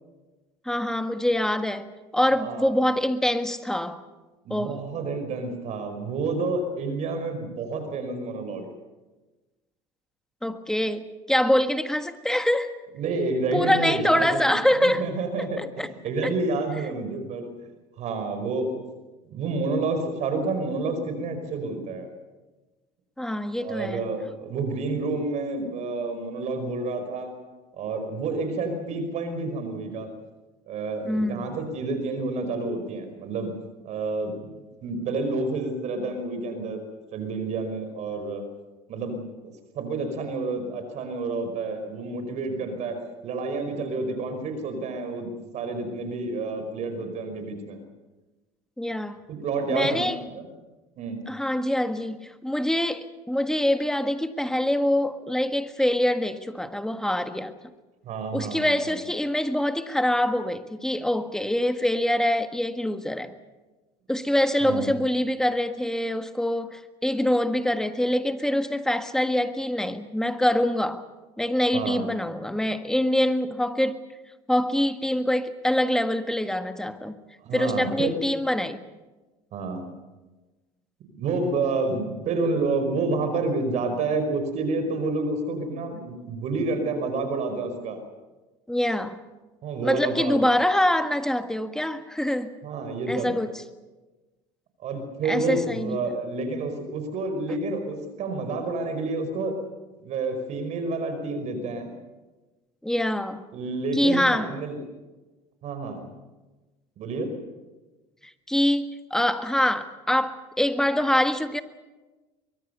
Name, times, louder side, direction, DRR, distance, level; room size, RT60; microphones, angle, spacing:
voice 1, 0.6-1.9 2.1-4.0 4.5-4.8 10.4-12.7 13.5-15.0 15.4-15.9 16.2-16.3 23.2-24.0 31.0-31.5 48.8-49.2 49.7-50.2 51.3-57.5 58.3-63.3 64.1-71.0 71.4-74.0 74.5-77.2 77.5-78.8 88.7-89.2 89.8-92.5 93.1-93.5 95.3-96.0 102.8-103.4 103.9-104.5 108.5-111.6, left 1 dB, 5° left, 9 dB, 1.7 m, -25 dB
voice 2, 2.4-2.7 4.5-8.7 12.9-17.5 18.0-18.8 19.3-22.1 23.6-27.3 27.8-30.2 30.7-33.5 33.8-36.8 37.1-38.4 38.9-39.2 39.8-47.8 49.3-50.5 51.0-51.2 58.0-59.0 64.6-64.9 71.7-72.1 77.4-78.2 79.5-79.9 81.1-88.0 89.6-90.4 92.6-93.3 94.8-99.6 100.0-101.9 103.5-104.8 105.6-106.1 107.0-107.3, right 3 dB, 55° right, 7 dB, 5.2 m, -29 dB
24.0 x 22.0 x 6.9 m, 1.2 s
supercardioid pair, 100°, 14 cm